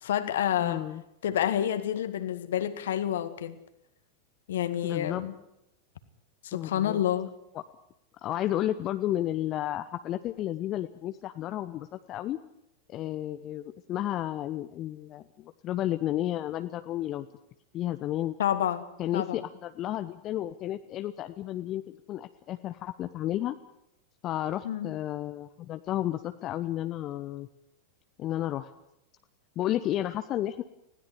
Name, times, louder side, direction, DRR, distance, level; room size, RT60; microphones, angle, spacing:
voice 1, 0.0-0.8 1.2-3.6 4.5-5.3 6.4-7.3 18.4-18.8 19.1-19.4 24.6-24.9, left 10 dB, 60° left, 12 dB, 1.9 m, -28 dB
voice 2, 0.6-1.0 4.8-5.2 6.5-7.0 7.5-7.6 8.2-12.4 12.9-17.3 17.7-18.4 19.0-21.8 22.1-23.6 24.2-27.5 28.2-28.7 29.6-30.6, left 13 dB, 35° left, 10 dB, 0.9 m, -32 dB
20.5 x 17.0 x 9.7 m, 0.84 s
figure-of-eight pair, 90°, 0 cm